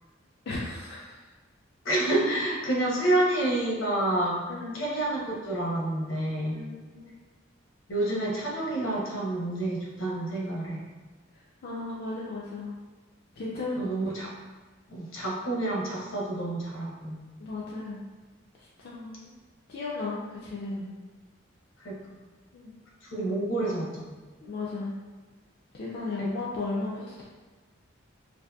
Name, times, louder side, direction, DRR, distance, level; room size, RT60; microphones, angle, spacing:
voice 1, 0.5-1.2 4.5-4.9 6.5-7.1 11.6-12.8 13.4-13.9 17.4-18.0 18.8-19.3 19.7-20.9 22.5-22.7 24.4-25.0 25.7-27.2, left 3 dB, 50° left, -6 dB, 0.3 m, -35 dB
voice 2, 1.8-4.4 4.7-6.6 7.9-10.8 13.7-14.3 14.9-17.2 21.8-22.1 23.0-24.1 26.2-26.3, right 1 dB, 75° left, -3 dB, 0.7 m, -28 dB
2.7 x 2.5 x 2.2 m, 1.3 s
head